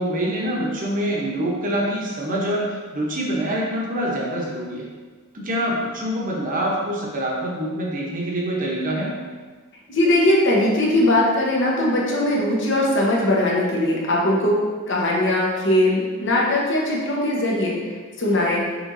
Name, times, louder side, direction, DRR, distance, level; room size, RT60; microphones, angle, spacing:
voice 1, 0.0-4.9 5.3-9.1, right 1 dB, 40° right, -3 dB, 0.8 m, -25 dB
voice 2, 9.9-14.5 14.9-17.8 18.2-18.6, left 1 dB, 60° left, -3 dB, 0.9 m, -20 dB
6.0 x 3.1 x 2.6 m, 1.5 s
head